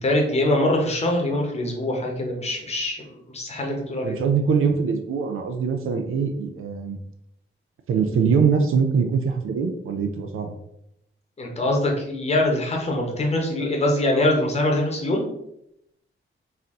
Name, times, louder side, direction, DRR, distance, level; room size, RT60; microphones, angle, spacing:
voice 1, 0.0-4.2 11.4-15.3, left 1 dB, 30° left, 1 dB, 0.9 m, -23 dB
voice 2, 4.0-7.0 7.9-10.5, right 6 dB, 75° right, 6 dB, 0.5 m, -23 dB
4.2 x 2.7 x 3.6 m, 0.79 s
wide cardioid pair, 160°, 21 cm